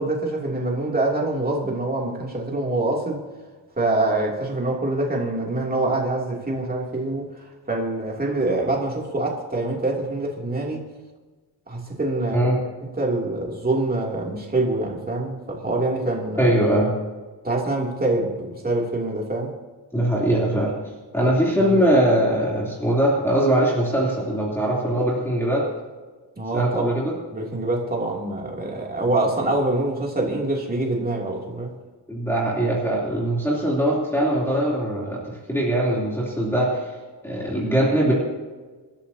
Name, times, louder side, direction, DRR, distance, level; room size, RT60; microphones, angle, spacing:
voice 1, 0.0-3.2 3.8-7.3 7.7-10.8 11.7-12.5 13.0-16.5 17.4-19.5 21.2-21.9 26.4-27.0 27.3-31.7, right 2 dB, 20° right, -2 dB, 2.9 m, -25 dB
voice 2, 16.4-16.9 19.9-20.7 21.1-25.6 26.5-27.1 32.1-36.9 37.2-38.1, right 1 dB, 5° left, -6 dB, 3.2 m, -21 dB
27.5 x 13.0 x 2.9 m, 1.3 s
wide cardioid pair, 160°, 43 cm